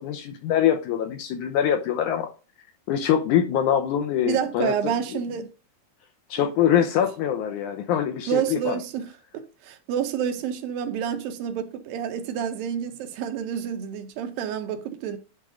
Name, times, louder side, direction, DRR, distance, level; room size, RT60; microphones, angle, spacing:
voice 1, 0.0-2.3 2.9-5.2 6.3-8.8, left 9 dB, 75° left, 2.0 m, -24 dB
voice 2, 4.3-5.5 6.4-6.5 8.3-15.2, right 8 dB, 80° right, 2.7 m, -29 dB
10.5 x 3.7 x 5.0 m
omnidirectional pair, 4.2 m